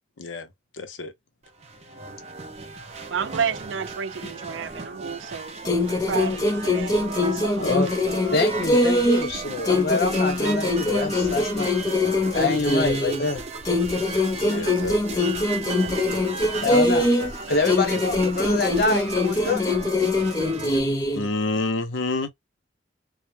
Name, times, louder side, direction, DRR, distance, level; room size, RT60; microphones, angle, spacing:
voice 1, 0.2-0.5 0.7-1.1 14.4-15.3 21.1-22.3, left 2 dB, 90° left, 0.6 m, -28 dB
sound 1, 1.4-20.8, right 4 dB, 35° right, 0.5 m, -36 dB
voice 2, 3.1-5.5 6.1-7.0 7.2-7.6, right 7 dB, 90° right, 0.4 m, -30 dB
sound 2, 5.6-9.3 9.6-13.3 13.6-17.3 17.6-21.3, left 2 dB, 20° left, 0.6 m, -23 dB
voice 3, 7.6-7.9 8.3-11.7 12.3-13.4 15.8-17.1 17.5-19.6, left 3 dB, 55° left, 0.9 m, -26 dB
2.1 x 2.0 x 3.0 m
head